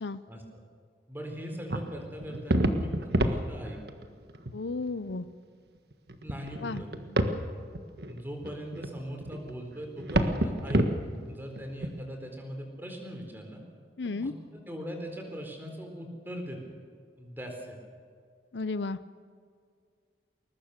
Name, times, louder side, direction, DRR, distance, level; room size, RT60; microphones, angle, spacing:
voice 1, 1.1-3.8 6.2-7.2 8.1-13.6 14.2-16.6 17.2-17.8, equal, 10° right, 3 dB, 4.0 m, -40 dB
sound 1, 1.7-4.0 4.3-4.5 5.1-5.2 5.9-7.4 7.7-11.9, right 1 dB, 60° right, 1.6 m, -28 dB
voice 2, 4.5-5.3 6.6-6.8 14.0-14.3 18.5-19.0, left 3 dB, 80° left, 14 dB, 0.7 m, -33 dB
21.5 x 20.0 x 6.7 m, 2.2 s
head